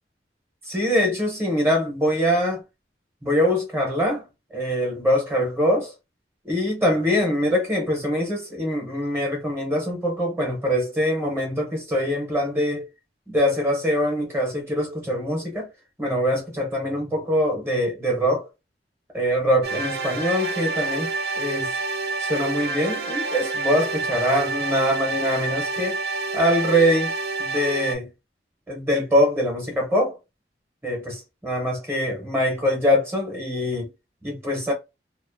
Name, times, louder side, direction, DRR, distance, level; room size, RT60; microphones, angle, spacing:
voice 1, 0.7-2.6 3.2-4.2 4.5-5.9 6.4-12.9 13.3-15.7 16.0-18.5 19.1-21.1 21.4-21.8 22.2-26.0 26.3-27.1 27.4-28.1 28.7-30.2 30.8-33.9 34.2-34.7, equal, 15° right, 0.6 m, -23 dB
sound 1, 19.6-27.9, right 3 dB, 60° right, 0.5 m, -28 dB
2.4 x 2.1 x 2.4 m
head